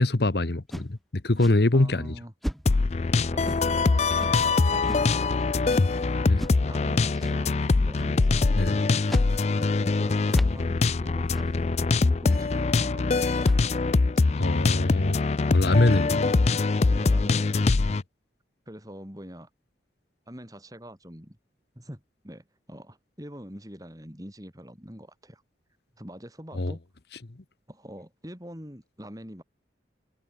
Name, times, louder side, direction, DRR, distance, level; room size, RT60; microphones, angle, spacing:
voice 1, 0.0-2.2 6.3-6.4 8.6-8.8 14.4-15.2 15.5-16.2 26.5-26.7, left 2 dB, 65° left, 1.1 m, -23 dB
sound 1, 0.7-1.0 1.4-1.6 2.4-2.8 3.5-3.8 4.2-4.4 4.9-5.1 5.6-5.8 6.4-6.6 7.2-7.4 8.0-8.2 9.0-9.4 9.7-9.8 10.3-10.7 11.3-11.5 12.3-12.6 13.3-13.8, equal, ahead, 1.1 m, -37 dB
voice 2, 1.7-2.3 3.3-13.4 15.7-16.6 16.9-17.7 18.7-19.5 20.3-21.4 21.7-25.4 26.0-26.8 27.7-29.4, equal, 20° right, 7.8 m, -44 dB
sound 2, 2.7-18.0, left 3 dB, 35° left, 0.4 m, -23 dB
head